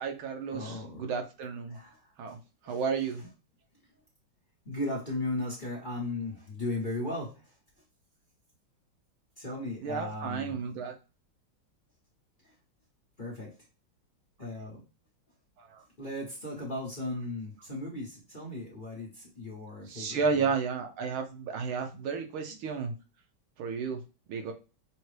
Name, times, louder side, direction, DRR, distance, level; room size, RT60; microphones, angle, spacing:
voice 1, 0.0-1.8 2.2-2.4 2.7-3.2 9.8-10.9 15.6-15.8 19.9-22.9 23.6-24.0 24.3-24.5, right 5 dB, 90° right, 4 dB, 1.6 m, -32 dB
voice 2, 0.5-1.1 1.7-2.0 2.6-2.8 3.2-3.3 4.6-7.5 9.4-10.6 13.2-13.5 14.4-14.8 16.0-20.5, left 2 dB, 35° left, -4 dB, 0.9 m, -36 dB
5.9 x 2.2 x 3.2 m, 0.31 s
omnidirectional pair, 2.2 m